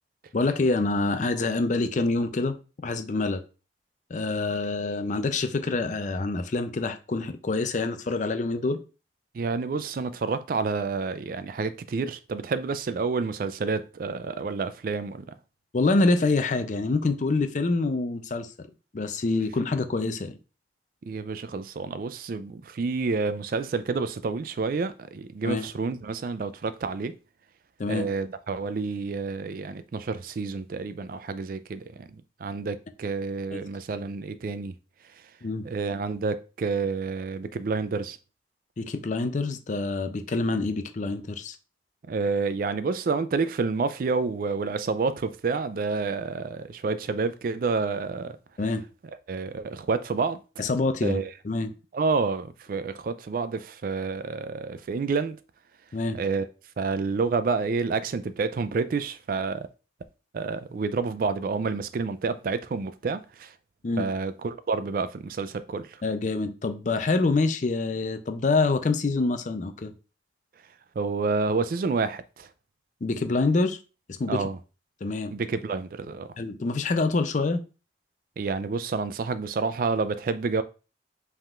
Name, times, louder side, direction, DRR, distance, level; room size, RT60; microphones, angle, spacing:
voice 1, 0.3-2.6 2.8-3.4 4.1-8.8 15.7-18.7 18.9-20.4 25.4-25.7 27.8-28.1 33.5-33.7 35.4-35.6 38.8-41.6 48.6-48.8 50.6-51.7 55.9-56.2 63.8-64.1 66.0-69.9 73.0-73.8 74.1-74.4 75.0-75.3 76.4-77.6, left 3 dB, 45° left, 0.5 m, -26 dB
voice 2, 9.3-15.2 21.1-27.1 27.9-34.7 35.6-38.2 42.1-48.4 49.3-50.4 51.0-51.3 51.9-55.4 56.1-56.5 56.8-59.7 60.3-63.5 64.0-66.0 71.0-72.5 74.3-74.6 75.3-76.3 78.4-80.6, right 4 dB, 50° right, 0.3 m, -29 dB
5.4 x 3.5 x 2.4 m
head